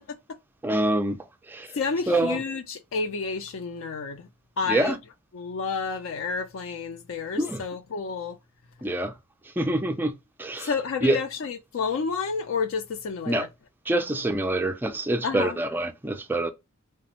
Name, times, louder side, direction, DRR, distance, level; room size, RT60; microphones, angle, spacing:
voice 1, 0.6-1.8 2.1-2.4 4.7-5.0 7.4-7.6 8.8-9.1 9.6-10.7 11.0-11.2 13.3-13.5 13.9-16.5, right 1 dB, 10° right, 0.3 m, -26 dB
voice 2, 1.7-4.3 4.6-5.0 5.3-8.4 10.6-13.5 15.2-15.6, left 5 dB, 60° left, 0.4 m, -30 dB
3.3 x 2.0 x 2.8 m
head